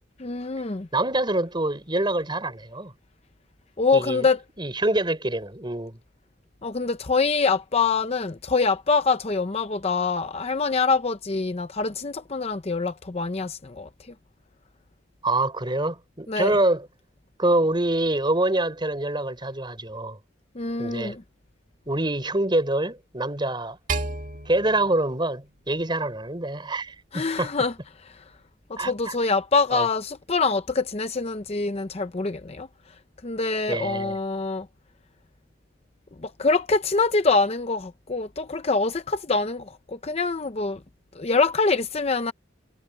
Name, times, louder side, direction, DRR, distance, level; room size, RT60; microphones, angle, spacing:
voice 1, 0.2-0.9 3.8-4.4 6.6-13.9 16.3-16.6 20.5-21.2 27.1-27.7 28.0-28.2 28.7-32.7 33.2-34.7 36.2-40.8 41.1-42.3, left 4 dB, 30° left, 0.7 m, -25 dB
voice 2, 0.9-2.9 3.9-4.3 4.6-6.0 15.2-16.9 17.4-20.2 20.8-21.2 21.9-23.8 24.5-27.5 28.8-29.1 29.7-29.9 33.7-34.2, right 2 dB, 25° right, 4.4 m, -25 dB
sound 1, 23.9-26.3, right 3 dB, 40° right, 2.6 m, -33 dB
head